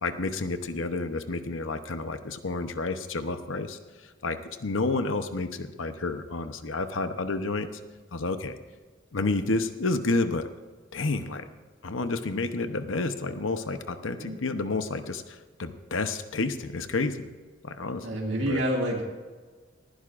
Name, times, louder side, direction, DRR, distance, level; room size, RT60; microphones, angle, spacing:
voice 1, 0.0-3.8 4.2-7.7 8.1-8.6 9.1-10.5 10.9-11.4 11.8-17.2 17.6-18.6, left 3 dB, 80° left, 9 dB, 0.9 m, -30 dB
voice 2, 18.0-19.0, right 1 dB, 70° right, -3 dB, 2.3 m, -28 dB
19.5 x 15.5 x 2.6 m, 1.4 s
head